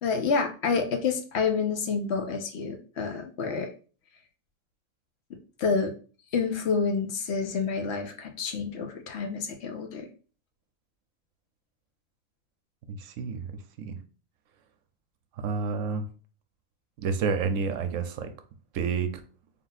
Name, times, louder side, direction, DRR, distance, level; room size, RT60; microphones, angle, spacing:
voice 1, 0.0-3.7 5.6-5.9 6.3-10.1, left 5 dB, 60° left, 5 dB, 0.8 m, -28 dB
voice 2, 12.9-13.5 13.8-14.0 15.4-16.0 17.0-18.3 18.7-19.2, right 5 dB, 70° right, 8 dB, 0.9 m, -29 dB
3.7 x 2.6 x 3.9 m, 0.38 s
omnidirectional pair, 1.5 m